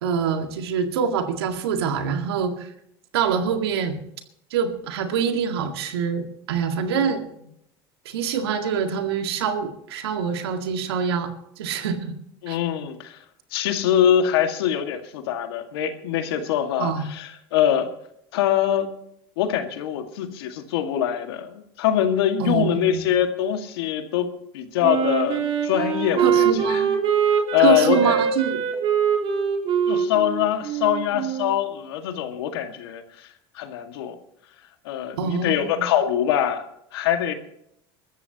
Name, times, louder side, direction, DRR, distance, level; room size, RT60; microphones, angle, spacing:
voice 1, 0.0-2.7 3.1-4.0 4.5-7.2 8.1-11.3 11.6-12.1 12.5-12.6 16.8-17.1 22.4-23.1 26.2-26.9 27.6-28.6 35.2-35.9, right 7 dB, 90° right, 5 dB, 2.0 m, -25 dB
voice 2, 12.4-13.2 13.5-17.9 18.3-18.9 19.4-24.3 24.5-26.8 27.5-28.2 29.9-33.3 33.5-34.2 34.8-36.6 36.9-37.3, left 10 dB, 85° left, 5 dB, 2.0 m, -23 dB
Wind instrument woodwind instrument, 24.8-31.6, right 7 dB, 45° right, 3.4 m, -23 dB
24.0 x 13.5 x 3.0 m, 0.74 s
supercardioid pair, 95°, 13 cm